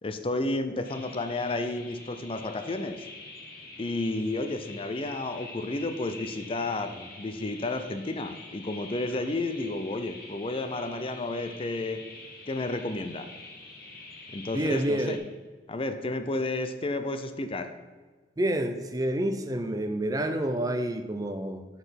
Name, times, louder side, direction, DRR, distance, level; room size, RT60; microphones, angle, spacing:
voice 1, 0.0-3.1 3.8-12.0 12.5-13.3 14.3-15.2 15.7-17.8, left 2 dB, 30° left, 9 dB, 0.5 m, -31 dB
sound 1, 0.8-15.2, left 3 dB, 60° left, 1.6 m, -46 dB
voice 2, 14.5-15.2 18.4-21.7, right 1 dB, 20° right, 7 dB, 0.5 m, -28 dB
6.2 x 5.6 x 5.8 m, 1.4 s
head